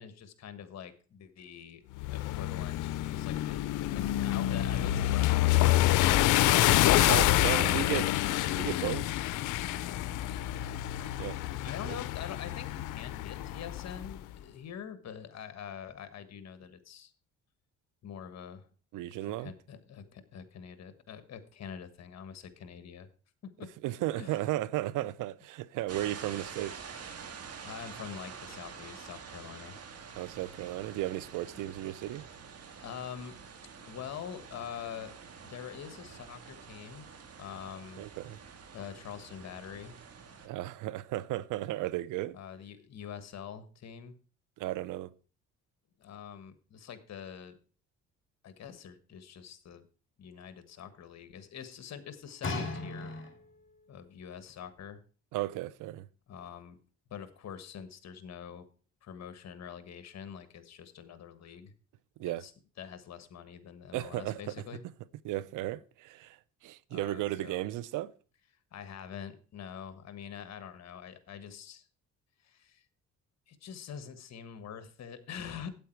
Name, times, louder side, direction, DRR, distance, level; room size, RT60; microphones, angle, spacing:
voice 1, 0.0-7.5 7.9-8.1 9.7-10.6 11.6-17.1 18.0-18.7 19.0-23.1 23.4-23.7 24.2-24.4 27.6-29.8 32.8-33.4 33.9-35.1 35.4-37.1 37.4-38.1 38.7-39.9 42.3-44.1 46.0-47.6 48.4-49.9 50.2-53.2 53.9-55.0 56.3-56.8 57.1-58.7 59.0-61.7 62.2-62.5 62.8-64.8 66.9-67.6 68.7-71.8 72.4-72.8 73.5-75.7, left 8 dB, 60° left, 1.4 m, -45 dB
sound 1, 2.0-14.1, left 14 dB, 90° left, 0.6 m, -27 dB
voice 2, 7.1-8.1 8.5-9.1 11.2-11.4 11.8-12.0 18.9-19.5 23.8-26.8 30.2-32.2 38.0-38.4 40.4-42.4 44.6-45.1 55.3-56.1 62.2-62.4 63.9-64.5 65.2-66.4 66.6-68.1, right 15 dB, 90° right, 0.6 m, -34 dB
sound 2, 25.9-40.5, right 6 dB, 55° right, 1.7 m, -47 dB
sound 3, 52.4-53.7 54.5-54.6, left 3 dB, 40° left, 2.5 m, -36 dB
8.6 x 8.5 x 4.5 m
cardioid pair, 90°, 30 cm